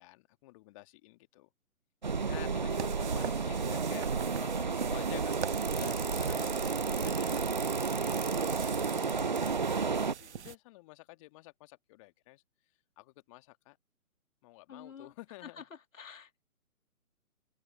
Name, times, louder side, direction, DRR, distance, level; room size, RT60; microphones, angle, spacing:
voice 1, 0.0-1.5 2.2-7.3 7.8-9.9 10.2-12.4 13.0-13.8 14.4-15.6, left 21 dB, 20° left, 1.5 m, -51 dB
sound 1, 2.0-10.1, right 5 dB, 35° right, 0.4 m, -31 dB
sound 2, 2.7-10.6, right 8 dB, 50° right, 1.4 m, -44 dB
sound 3, 5.3-9.5, right 5 dB, 80° right, 2.0 m, -42 dB
voice 2, 14.7-15.1 15.4-16.4, left 7 dB, 60° left, 2.3 m, -49 dB
open air
figure-of-eight pair, 140°, 43 cm